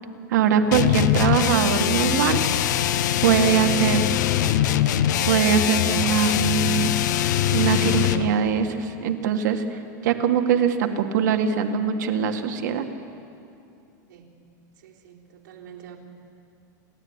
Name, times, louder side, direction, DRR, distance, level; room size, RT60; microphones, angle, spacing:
voice 1, 0.3-2.4 3.2-4.1 5.3-6.9 7.5-9.6 10.0-12.9, right 7 dB, 70° right, 6 dB, 1.9 m, -22 dB
sound 1, 0.7-8.3, left 11 dB, 70° left, 1.0 m, -22 dB
voice 2, 14.8-16.0, right 9 dB, 90° right, -2 dB, 3.7 m, -46 dB
29.5 x 12.5 x 9.8 m, 2.6 s
supercardioid pair, 180°, 10 cm